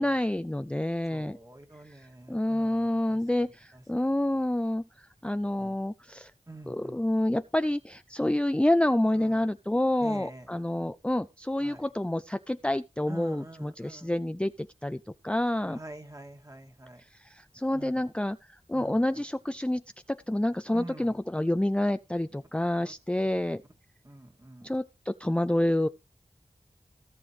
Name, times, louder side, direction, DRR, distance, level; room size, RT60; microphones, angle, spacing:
voice 1, 0.0-1.4 2.3-6.3 6.7-15.8 17.2-19.8 20.1-23.6 24.6-25.9, left 1 dB, 10° left, 0.5 m, -28 dB
voice 2, 1.1-3.8 5.6-5.8 6.5-7.0 9.1-9.5 10.0-10.5 11.6-11.9 13.1-14.1 15.6-17.0 17.7-18.1 18.7-19.2 20.7-21.2 22.8-22.9 24.0-24.7, right 1 dB, 30° right, 2.4 m, -46 dB
17.5 x 7.0 x 3.2 m
wide cardioid pair, 50°, 12 cm